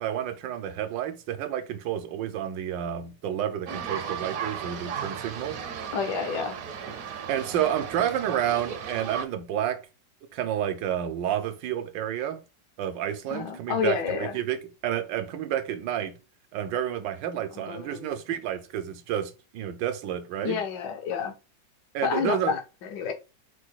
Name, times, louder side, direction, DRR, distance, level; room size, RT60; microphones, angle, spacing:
voice 1, 0.0-5.6 7.3-9.8 10.3-12.4 12.8-14.6 14.8-16.2 16.5-20.6 21.9-22.5, right 10 dB, 75° right, 1.3 m, -30 dB
sound 1, 3.7-9.3, right 7 dB, 60° right, 1.0 m, -35 dB
voice 2, 5.9-6.5 13.3-14.4 17.5-18.2 20.4-21.3 22.0-23.1, left 6 dB, 75° left, 1.5 m, -29 dB
4.7 x 2.3 x 4.4 m
omnidirectional pair, 2.0 m